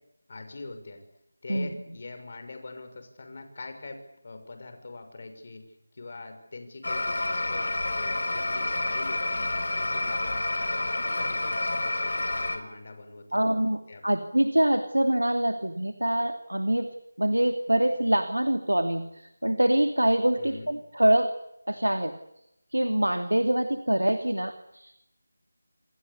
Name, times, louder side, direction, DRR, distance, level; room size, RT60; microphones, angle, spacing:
voice 1, 0.3-1.0 1.4-10.6 10.8-13.5 13.9-14.0 20.4-20.8, left 3 dB, 45° left, 7 dB, 6.3 m, -43 dB
sound 1, 6.8-12.6, left 2 dB, 60° left, 5.4 m, -29 dB
voice 2, 13.3-16.9 17.2-21.3 21.7-22.1 22.7-25.0, right 1 dB, 90° right, 8 dB, 2.6 m, -25 dB
29.0 x 25.5 x 7.1 m, 0.82 s
figure-of-eight pair, 165°, 0 cm